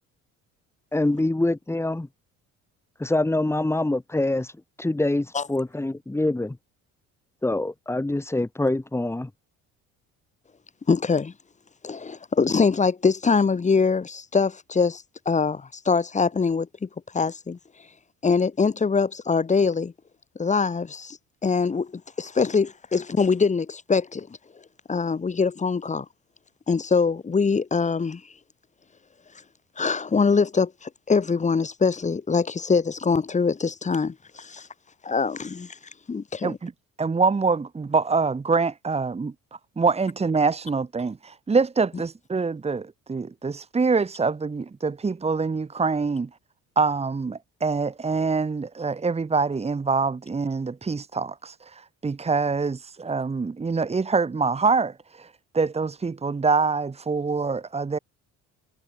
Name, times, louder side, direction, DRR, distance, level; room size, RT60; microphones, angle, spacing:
voice 1, 0.9-2.1 3.0-4.5 4.8-6.6 7.4-9.3, left 2 dB, 10° left, 3.4 m, -25 dB
voice 2, 10.9-11.3 11.8-16.9 17.1-17.6 18.2-19.9 20.4-21.2 21.4-24.3 24.9-26.1 26.7-28.2 29.8-34.7 35.0-35.8 36.1-36.5, left 5 dB, 25° left, 2.7 m, -23 dB
voice 3, 37.0-39.3 39.8-46.3 46.8-58.0, right 4 dB, 20° right, 2.1 m, -25 dB
cardioid pair, 115°, 29 cm